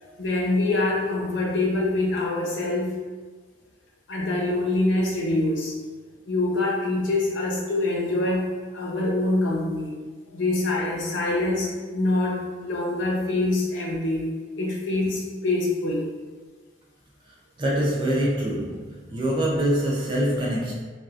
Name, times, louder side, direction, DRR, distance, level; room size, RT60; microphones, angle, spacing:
voice 1, 0.0-3.0 4.1-5.7 6.3-10.0 10.3-14.3 14.6-16.1, left 2 dB, 80° left, -3 dB, 0.7 m, -25 dB
voice 2, 17.6-20.7, right 1 dB, 25° right, -3 dB, 0.3 m, -24 dB
4.0 x 2.3 x 2.3 m, 1.4 s
head